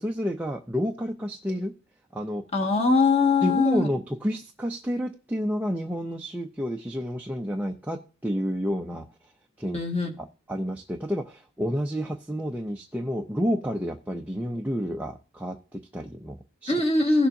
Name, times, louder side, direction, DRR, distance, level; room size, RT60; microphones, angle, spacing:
voice 1, 0.0-1.7 2.1-2.5 3.4-9.1 9.6-9.8 10.2-16.7, equal, 5° right, 0.5 m, -30 dB
voice 2, 2.5-3.9 9.6-10.1 16.7-17.3, left 3 dB, 30° left, 1.6 m, -22 dB
16.5 x 7.1 x 2.7 m
head